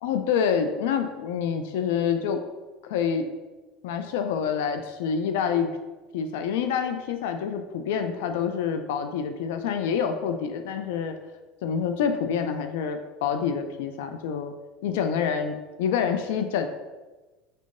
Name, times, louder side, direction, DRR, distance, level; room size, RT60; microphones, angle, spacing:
voice 1, 0.0-2.4 2.8-3.3 3.8-5.7 6.1-11.2 11.6-14.5 14.8-16.7, left 7 dB, 90° left, 7 dB, 0.3 m, -27 dB
5.4 x 3.7 x 2.5 m, 1.2 s
cardioid pair, 160°, 0 cm